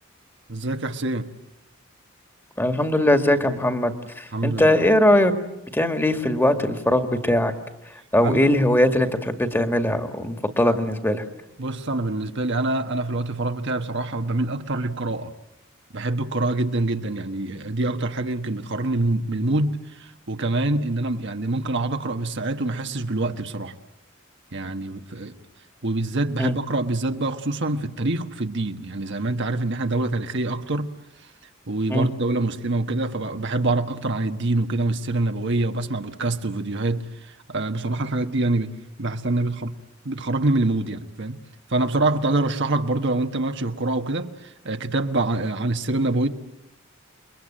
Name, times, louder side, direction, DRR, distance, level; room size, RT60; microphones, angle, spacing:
voice 1, 0.5-1.3 4.3-4.8 8.2-8.5 10.6-10.8 11.6-15.3 15.9-23.7 24.5-25.3 25.8-30.9 31.7-39.7 40.0-41.4 41.7-46.3, right 2 dB, 60° right, 1.5 m, -25 dB
voice 2, 2.6-5.3 5.7-7.5 8.1-11.2 26.4-26.6 31.9-32.1, left 1 dB, 10° left, 2.0 m, -20 dB
29.0 x 22.5 x 9.0 m
head